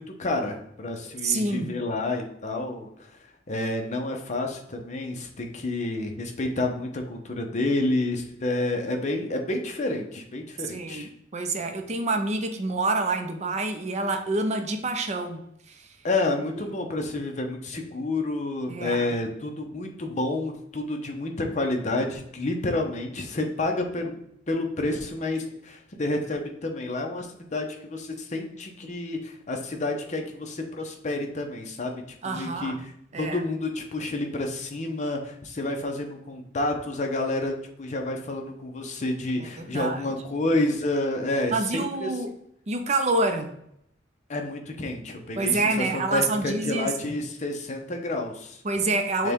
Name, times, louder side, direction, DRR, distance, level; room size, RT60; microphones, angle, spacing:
voice 1, 0.0-3.1 3.5-11.1 16.0-24.2 24.5-32.9 33.2-42.1 44.3-48.6 49.2-49.3, left 2 dB, 40° left, 3 dB, 0.7 m, -29 dB
voice 2, 1.2-1.8 10.6-15.9 16.6-16.7 18.7-19.1 32.2-32.8 33.1-33.4 39.4-40.1 41.5-42.3 42.7-43.5 45.4-47.2 48.6-49.3, right 3 dB, 40° right, 6 dB, 0.6 m, -27 dB
6.5 x 2.3 x 3.5 m, 0.74 s
head